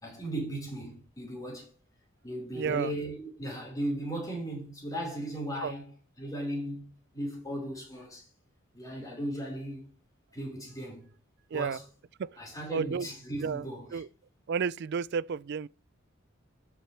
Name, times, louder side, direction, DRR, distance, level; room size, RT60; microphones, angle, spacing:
voice 1, 0.0-1.7 2.2-5.9 6.2-8.3 8.7-9.9 10.3-11.1 11.5-11.8 12.4-14.0, right 1 dB, 20° left, 4.4 m, -37 dB
voice 2, 2.5-2.9 5.6-5.7 11.5-11.8 12.2-12.3 12.7-13.1 13.4-14.1 14.5-15.7, right 6 dB, 55° right, 0.4 m, -32 dB
13.0 x 6.1 x 3.3 m
head